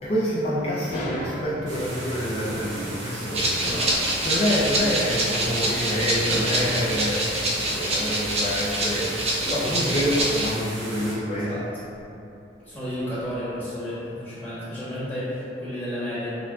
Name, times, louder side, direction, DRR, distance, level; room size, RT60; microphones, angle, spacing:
voice 1, 0.0-3.6 4.2-11.5, equal, 35° left, -8 dB, 0.4 m, -27 dB
sound 1, 0.8-7.2, equal, 50° left, 0.9 m, -36 dB
sound 2, 1.7-11.2, right 1 dB, 85° right, 0.9 m, -36 dB
Rattle (instrument), 3.3-10.5, right 1 dB, 35° right, 0.5 m, -26 dB
voice 2, 11.3-11.6 12.6-16.4, equal, 10° left, -11 dB, 1.0 m, -32 dB
5.9 x 2.2 x 2.3 m, 2.8 s
head